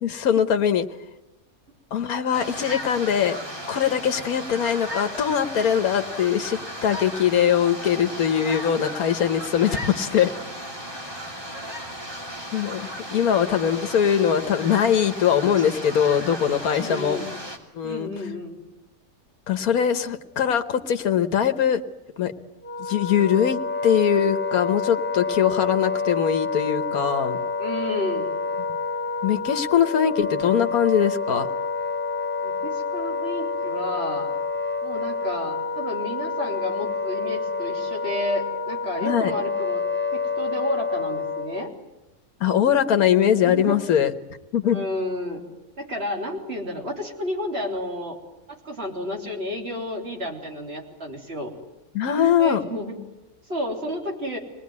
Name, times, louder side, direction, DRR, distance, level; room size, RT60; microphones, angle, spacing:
voice 1, 0.0-0.9 1.9-3.4 3.7-10.3 12.5-17.2 17.7-18.1 19.5-21.8 22.2-22.3 22.8-27.4 29.2-31.5 39.0-39.3 42.4-44.1 44.5-44.8 51.9-52.7, left 8 dB, 85° left, 8 dB, 1.6 m, -22 dB
sound 1, 2.3-17.6, equal, 15° right, 2.7 m, -35 dB
voice 2, 16.8-17.3 17.8-18.6 27.6-28.3 32.4-34.3 34.8-39.8 40.1-41.7 43.3-43.8 44.6-45.4 45.8-48.2 48.5-51.5 52.4-53.0 53.5-54.4, left 1 dB, 45° right, 1 dB, 3.9 m, -31 dB
Wind instrument woodwind instrument, 22.6-41.7, left 4 dB, 10° left, 1.0 m, -28 dB
24.5 x 20.0 x 9.6 m, 0.98 s
omnidirectional pair, 1.5 m